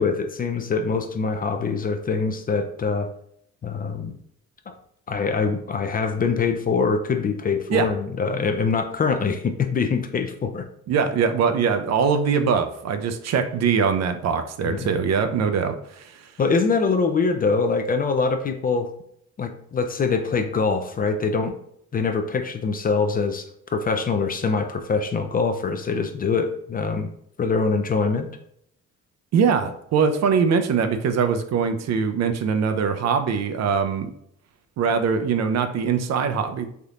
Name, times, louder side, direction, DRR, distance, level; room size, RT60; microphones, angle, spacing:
voice 1, 0.0-3.1 3.6-4.2 4.7-4.8 5.1-10.7 14.6-15.0 16.4-18.9 19.4-21.5 21.9-27.1 27.4-28.3, left 4 dB, 30° left, 6 dB, 0.4 m, -24 dB
voice 2, 10.9-16.2 29.3-34.1 34.8-36.7, right 6 dB, 60° right, 8 dB, 0.5 m, -22 dB
3.4 x 2.7 x 2.4 m, 0.70 s
cardioid pair, 90°, 30 cm